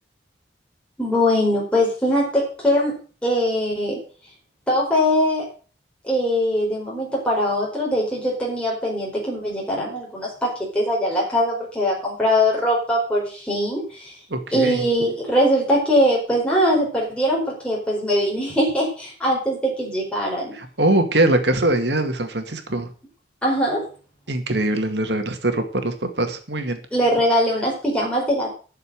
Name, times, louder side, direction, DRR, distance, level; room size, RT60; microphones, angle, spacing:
voice 1, 1.0-4.0 4.7-5.5 6.0-14.1 14.5-20.5 23.4-23.8 26.9-28.5, equal, 5° left, -4 dB, 4.7 m, -21 dB
voice 2, 14.3-14.8 20.5-22.9 24.3-26.8, right 1 dB, 70° right, 6 dB, 2.2 m, -22 dB
12.5 x 7.0 x 7.8 m, 0.39 s
head